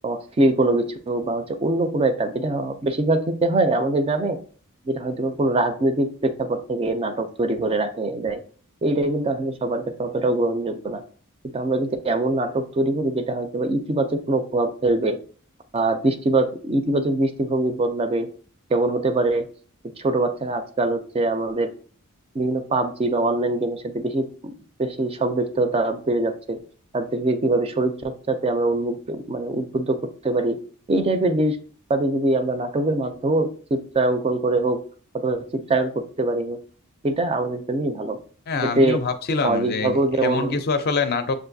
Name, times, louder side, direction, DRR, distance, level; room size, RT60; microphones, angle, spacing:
voice 1, 0.0-4.4 4.9-8.4 8.8-11.0 11.5-15.2 15.7-18.3 18.7-19.5 20.0-21.7 22.3-24.5 24.8-26.6 26.9-30.6 30.9-31.6 31.9-34.8 35.1-36.6 37.0-38.2 38.6-39.0 39.4-40.6, right 2 dB, 25° right, 7 dB, 0.4 m, -23 dB
voice 2, 38.5-41.4, left 4 dB, 45° left, 8 dB, 0.5 m, -25 dB
6.3 x 2.5 x 2.6 m, 0.43 s
head